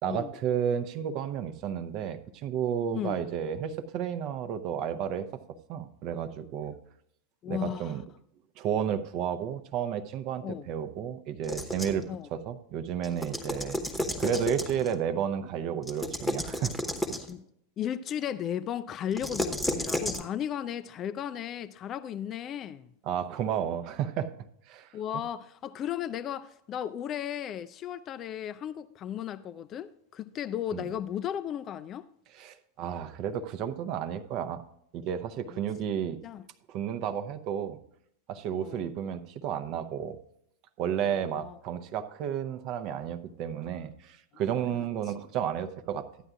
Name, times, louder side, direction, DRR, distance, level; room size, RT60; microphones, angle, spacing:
voice 1, 0.0-6.8 7.5-8.0 8.6-12.0 12.3-13.8 14.2-16.7 23.1-24.3 24.7-24.9 30.7-30.8 32.4-34.6 34.9-36.2 36.7-37.8 38.3-40.2 40.8-46.1, right 8 dB, 40° right, 0.7 m, -32 dB
voice 2, 7.4-8.0 10.4-10.7 12.1-12.3 17.2-17.4 17.8-22.9 24.9-32.1 35.5-35.6 36.2-36.4 38.6-38.9 41.0-41.6 44.7-44.9, left 10 dB, 30° left, 0.4 m, -35 dB
sound 1, 11.4-12.1 13.0-14.9 15.8-17.3 19.1-20.2, left 1 dB, 5° left, 1.0 m, -32 dB
14.0 x 9.7 x 2.4 m
figure-of-eight pair, 90°, 0 cm